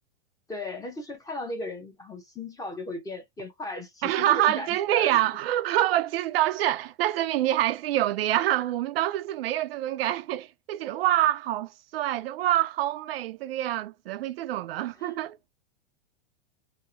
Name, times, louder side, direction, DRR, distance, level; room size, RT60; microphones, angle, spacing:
voice 1, 0.5-5.2 14.9-15.1, left 2 dB, 10° left, 0.7 m, -37 dB
voice 2, 4.0-15.5, right 13 dB, 70° right, 0.4 m, -26 dB
2.8 x 2.0 x 2.5 m
hypercardioid pair, 125°, 31 cm